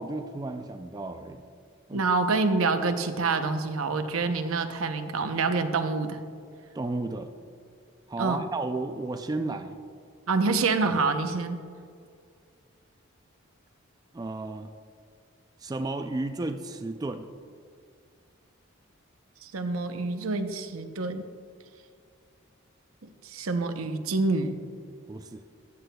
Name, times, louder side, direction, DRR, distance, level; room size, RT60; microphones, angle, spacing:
voice 1, 0.0-1.4 1.9-2.0 6.7-7.3 8.1-9.8 14.1-14.7 15.6-17.3 25.1-25.4, right 2 dB, 20° right, 7 dB, 0.3 m, -33 dB
voice 2, 1.9-6.2 8.2-8.4 10.3-11.6 19.4-21.3 23.0-24.6, right 3 dB, 80° right, 7 dB, 0.7 m, -27 dB
14.0 x 9.4 x 2.3 m, 2.2 s
head